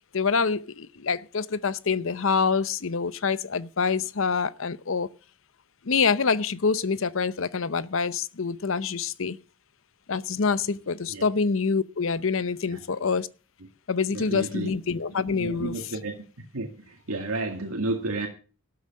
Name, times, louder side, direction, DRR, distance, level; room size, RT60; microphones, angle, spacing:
voice 1, 0.1-5.1 5.8-9.4 10.1-13.3 13.9-15.8, left 5 dB, 65° left, 0.7 m, -26 dB
voice 2, 14.1-14.7 15.3-16.3 16.5-18.3, right 2 dB, 80° right, 2.1 m, -31 dB
13.0 x 8.1 x 7.4 m
head